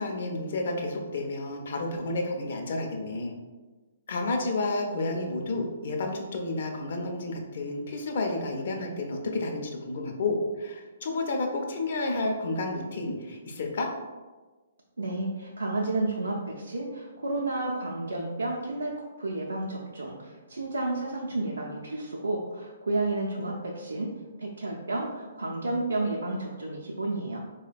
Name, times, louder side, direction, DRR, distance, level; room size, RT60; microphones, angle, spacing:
voice 1, 0.0-3.3 4.1-13.9, left 2 dB, 60° left, 2 dB, 0.5 m, -31 dB
voice 2, 15.0-24.1 24.4-27.4, right 2 dB, 85° right, -3 dB, 0.4 m, -31 dB
3.8 x 2.1 x 2.4 m, 1.3 s
figure-of-eight pair, 130°, 0 cm